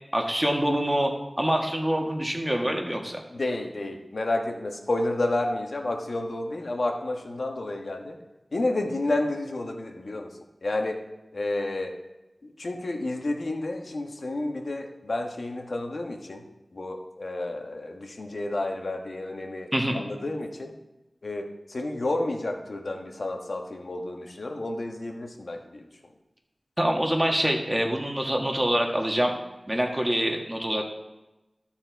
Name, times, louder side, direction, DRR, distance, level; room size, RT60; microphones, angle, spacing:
voice 1, 0.1-3.2 19.7-20.1 26.8-29.3 29.7-30.8, right 1 dB, 20° right, 2 dB, 1.5 m, -25 dB
voice 2, 3.3-8.1 8.5-10.3 10.6-11.0 11.3-11.9 12.4-16.4 16.7-19.7 19.9-20.7 21.2-25.8, left 2 dB, 70° left, 2 dB, 1.2 m, -30 dB
12.0 x 4.4 x 4.5 m, 1.0 s
wide cardioid pair, 50°, 0 cm